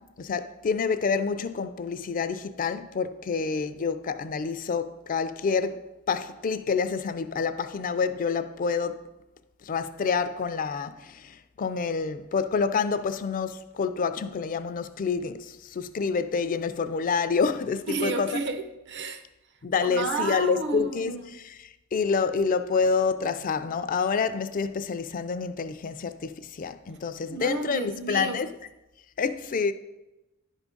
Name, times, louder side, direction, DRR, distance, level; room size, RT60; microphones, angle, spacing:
voice 1, 0.0-9.1 9.6-18.3 19.6-21.1 21.9-28.5 29.2-29.7, left 5 dB, 40° left, 0.3 m, -28 dB
voice 2, 17.9-19.2 19.8-21.3 27.3-28.4, right 3 dB, 50° right, 0.6 m, -31 dB
10.5 x 3.6 x 5.2 m
head